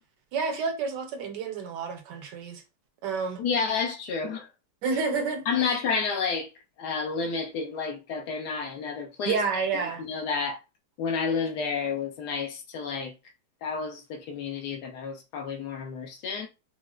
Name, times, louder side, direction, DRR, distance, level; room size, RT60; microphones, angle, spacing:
voice 1, 0.3-2.6 3.0-3.4 4.8-5.4 9.2-10.0, right 5 dB, 75° right, 1.3 m, -29 dB
voice 2, 3.4-4.5 5.5-6.5 6.8-9.4 9.7-10.6 11.0-13.1 13.6-16.5, left 5 dB, 70° left, 1.1 m, -30 dB
4.6 x 2.1 x 2.3 m
omnidirectional pair, 1.9 m